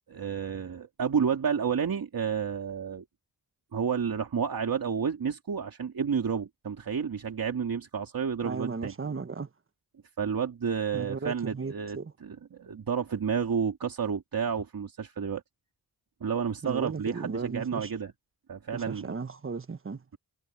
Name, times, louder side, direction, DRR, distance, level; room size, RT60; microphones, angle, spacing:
voice 1, 0.1-3.0 3.7-8.9 10.2-15.4 16.2-18.1 18.5-19.1, right 7 dB, 65° right, 2.7 m, -30 dB
voice 2, 8.4-9.5 10.9-12.1 16.6-17.9 18.7-20.0, right 4 dB, 35° right, 1.2 m, -36 dB
cardioid pair, 70°, 37 cm